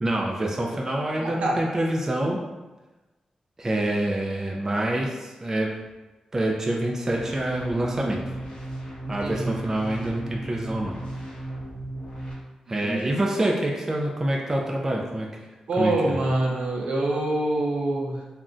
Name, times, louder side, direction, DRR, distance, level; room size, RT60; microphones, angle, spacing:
voice 1, 0.0-2.4 3.6-5.7 6.3-8.2 9.1-10.9 12.7-15.4 15.8-16.2, right 1 dB, 20° right, -1 dB, 0.3 m, -26 dB
voice 2, 1.2-1.6 9.0-9.5 12.8-13.2 15.7-18.2, right 1 dB, 75° right, -2 dB, 0.6 m, -26 dB
sound 1, 7.1-12.3, right 1 dB, 55° left, 0.8 m, -36 dB
2.4 x 2.1 x 3.7 m, 1.1 s
wide cardioid pair, 125°, 2 cm